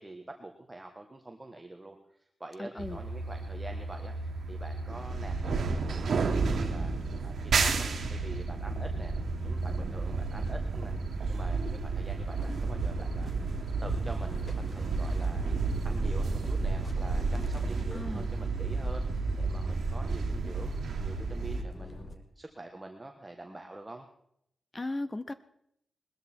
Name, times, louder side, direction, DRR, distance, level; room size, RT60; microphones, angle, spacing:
voice 1, 0.0-11.0 11.3-13.3 13.8-20.7 21.0-24.1, right 2 dB, 15° right, 3 dB, 1.3 m, -46 dB
voice 2, 2.6-3.0 17.9-18.3 24.7-25.3, left 2 dB, 20° left, 13 dB, 0.6 m, -36 dB
sound 1, 2.8-21.6, right 4 dB, 80° right, 1.6 m, -31 dB
sound 2, 7.0-15.6, left 2 dB, 65° left, 3.6 m, -49 dB
sound 3, 12.4-22.1, left 2 dB, 40° left, 2.0 m, -45 dB
20.5 x 13.5 x 4.4 m, 0.73 s
wide cardioid pair, 135°, 0 cm